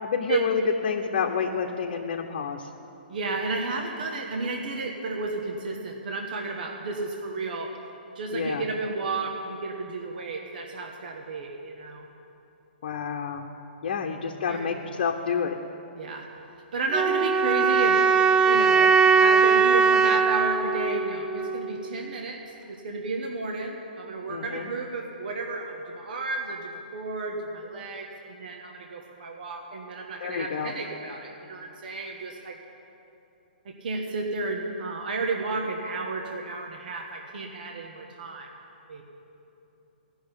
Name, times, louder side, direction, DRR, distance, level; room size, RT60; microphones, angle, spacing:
voice 1, 0.0-2.7 8.3-8.6 12.8-13.5 13.8-15.6 24.3-24.7 30.2-30.7, left 6 dB, 55° left, 2 dB, 0.9 m, -29 dB
voice 2, 3.1-7.7 8.1-12.1 14.0-14.8 16.0-16.3 16.7-18.0 18.4-18.9 19.2-22.4 22.7-32.6 33.6-38.5 38.9-39.0, right 3 dB, 60° right, 1 dB, 1.4 m, -32 dB
sound 1, 16.9-21.9, right 5 dB, 15° right, 0.4 m, -21 dB
14.5 x 6.3 x 9.8 m, 2.9 s
hypercardioid pair, 130°, 5 cm